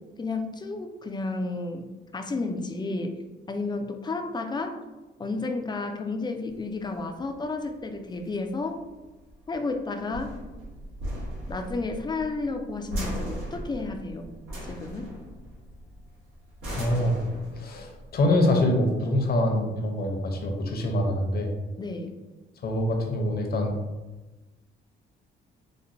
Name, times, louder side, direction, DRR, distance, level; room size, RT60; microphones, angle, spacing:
voice 1, 0.2-1.9 2.1-3.2 3.5-4.8 5.2-8.8 9.5-10.3 11.5-14.3 14.7-15.1 21.8-22.2, left 3 dB, 20° left, 5 dB, 0.4 m, -32 dB
sound 1, 6.5-19.5, equal, 90° right, 1.3 m, -38 dB
voice 2, 16.8-17.2 17.5-21.5 22.6-23.7, left 1 dB, 50° left, 2 dB, 0.7 m, -25 dB
4.2 x 2.1 x 2.6 m, 1.1 s
cardioid pair, 90°, 20 cm